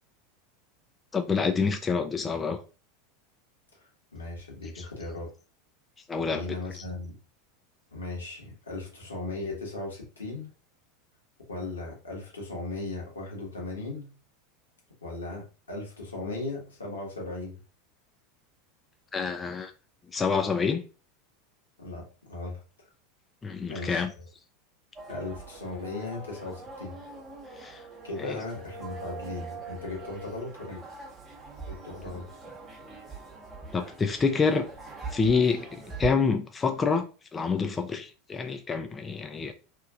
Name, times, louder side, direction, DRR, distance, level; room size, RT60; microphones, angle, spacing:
voice 1, 1.1-2.6 4.8-4.9 6.1-6.5 6.8-6.9 19.1-19.7 20.1-20.8 23.4-24.1 27.6-27.8 28.2-28.4 33.7-34.6 35.1-39.5, left 5 dB, 20° left, 0.4 m, -27 dB
voice 2, 4.1-5.3 6.3-7.2 7.9-10.5 11.5-14.1 15.0-17.6 21.8-22.6 23.7-24.2 25.1-27.0 28.0-30.8 31.7-32.3, left 2 dB, 90° left, 1.2 m, -37 dB
sound 1, 25.0-36.1, right 3 dB, 25° right, 1.0 m, -42 dB
2.9 x 2.5 x 2.4 m
hypercardioid pair, 85°, 0 cm